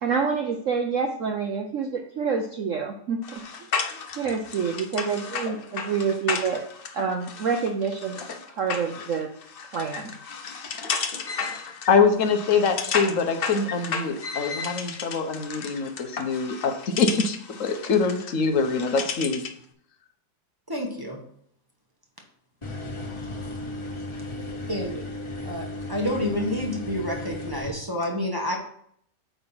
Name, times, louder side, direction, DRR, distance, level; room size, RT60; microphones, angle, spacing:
voice 1, 0.0-3.7 4.2-6.6 6.9-8.3 8.6-9.3 9.7-10.2, right 5 dB, 60° right, 3 dB, 0.8 m, -27 dB
sound 1, 3.2-19.6, left 5 dB, 90° left, 0.5 m, -33 dB
voice 2, 11.9-19.5, left 5 dB, 55° left, 6 dB, 1.1 m, -24 dB
voice 3, 20.7-21.2 24.7-25.0 25.4-28.6, left 1 dB, 15° right, 0 dB, 0.9 m, -29 dB
sound 2, 22.6-27.7, left 1 dB, 35° left, 0.5 m, -35 dB
8.8 x 3.5 x 5.6 m, 0.65 s
omnidirectional pair, 1.9 m